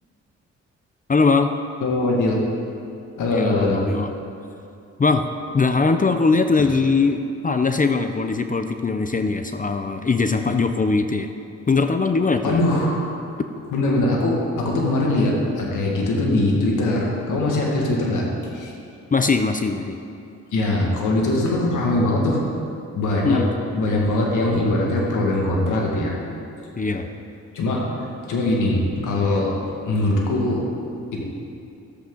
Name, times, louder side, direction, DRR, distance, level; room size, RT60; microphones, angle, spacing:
voice 1, 1.1-1.5 3.3-4.1 5.0-5.2 5.5-11.3 11.7-12.6 19.1-20.0 23.2-23.5 26.8-27.1, left 4 dB, 25° left, 7 dB, 0.6 m, -21 dB
voice 2, 1.8-2.4 3.2-3.8 12.4-13.1 13.7-18.2 18.5-18.7 20.5-22.4 22.9-23.4 23.7-26.2 26.9-27.0 27.5-27.9 28.3-29.6 29.9-30.6 31.1-31.2, left 2 dB, 85° left, -2 dB, 2.0 m, -21 dB
13.0 x 8.1 x 3.9 m, 2.6 s
cardioid pair, 65°, 30 cm